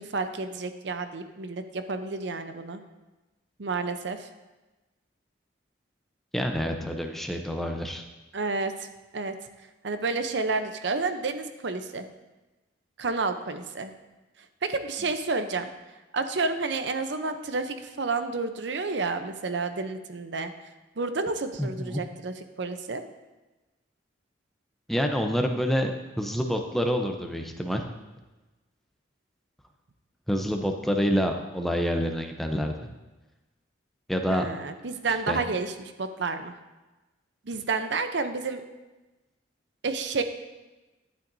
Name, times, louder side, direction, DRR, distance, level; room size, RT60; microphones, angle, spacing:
voice 1, 0.0-2.8 3.6-4.3 8.3-8.9 9.1-9.3 9.8-12.1 13.0-13.9 14.6-15.7 16.1-20.5 21.0-23.0 34.3-36.5 37.5-38.6 39.8-40.2, right 3 dB, 65° right, 8 dB, 0.7 m, -30 dB
voice 2, 6.3-8.0 21.6-22.0 24.9-25.9 26.2-27.8 30.3-32.7 34.1-34.5 35.3-35.4, equal, ahead, 3 dB, 0.6 m, -27 dB
11.5 x 8.8 x 2.7 m, 1.1 s
head